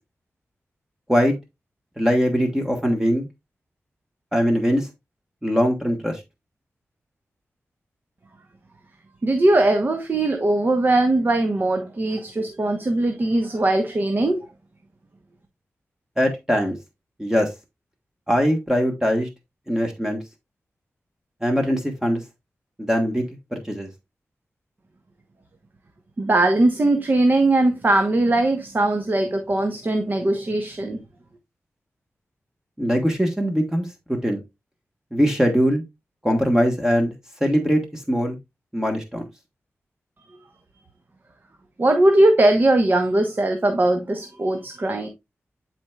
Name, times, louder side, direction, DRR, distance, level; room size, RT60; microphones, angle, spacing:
voice 1, 2.0-3.3 4.3-4.9 5.4-6.2 16.2-16.8 17.2-17.5 18.3-19.3 19.7-20.2 21.4-22.2 22.9-23.9 32.8-34.4 35.1-35.8 36.2-37.1 37.4-38.4 38.7-39.2, equal, 10° right, 1.3 m, -21 dB
voice 2, 9.2-14.5 26.2-31.0 41.8-45.1, right 2 dB, 40° right, 1.1 m, -20 dB
11.5 x 4.5 x 2.3 m
wide cardioid pair, 75°, 5 cm